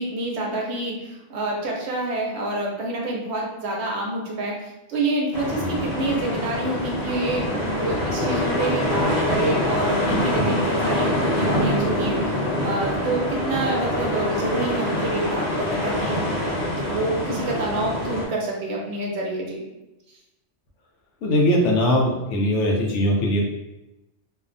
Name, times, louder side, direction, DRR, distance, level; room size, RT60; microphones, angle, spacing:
voice 1, 0.0-16.2 16.8-19.6, right 2 dB, 70° right, -1 dB, 0.8 m, -27 dB
sound 1, 5.3-18.2, left 1 dB, 15° right, 0.9 m, -25 dB
voice 2, 21.2-23.4, left 1 dB, 75° left, 0 dB, 0.9 m, -20 dB
2.6 x 2.1 x 2.5 m, 0.98 s
omnidirectional pair, 1.3 m